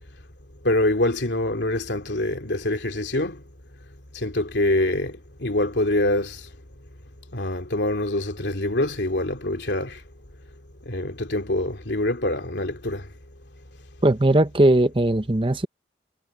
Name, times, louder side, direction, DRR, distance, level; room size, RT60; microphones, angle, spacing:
voice 1, 0.6-3.4 4.1-6.4 7.3-10.0 10.9-13.1, left 1 dB, 80° left, 2.7 m, -25 dB
voice 2, 14.0-15.7, right 1 dB, 30° right, 0.9 m, -19 dB
head